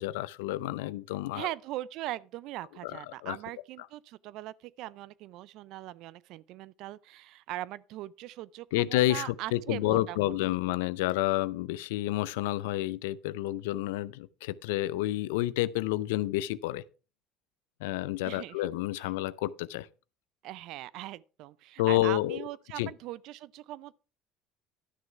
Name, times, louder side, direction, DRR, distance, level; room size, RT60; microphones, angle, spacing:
voice 1, 0.0-1.5 2.8-3.4 8.7-16.8 17.8-19.9 21.8-22.4 22.8-22.9, left 16 dB, 85° left, 0.5 m, -29 dB
voice 2, 1.3-10.3 18.2-18.6 20.4-23.9, right 15 dB, 70° right, 0.4 m, -40 dB
11.5 x 6.5 x 4.5 m
supercardioid pair, 85°, 0 cm